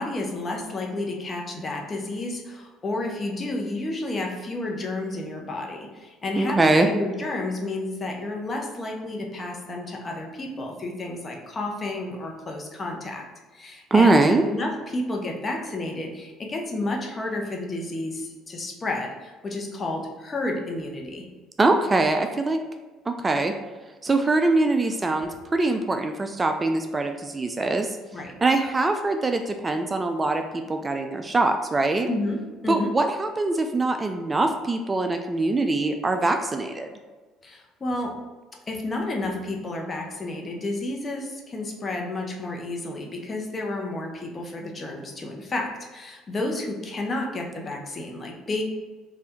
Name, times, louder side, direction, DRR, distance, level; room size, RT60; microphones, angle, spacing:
voice 1, 0.0-13.2 13.5-21.3 28.1-28.3 32.1-32.4 32.6-32.9 37.4-38.2 38.7-48.6, left 2 dB, 35° left, 1 dB, 0.9 m, -31 dB
voice 2, 6.4-6.9 13.9-14.4 21.6-22.6 23.1-23.5 24.0-28.0 28.4-32.1 32.7-36.9, right 2 dB, 25° right, 6 dB, 0.3 m, -23 dB
3.4 x 2.5 x 4.3 m, 1.3 s
hypercardioid pair, 65°, 0 cm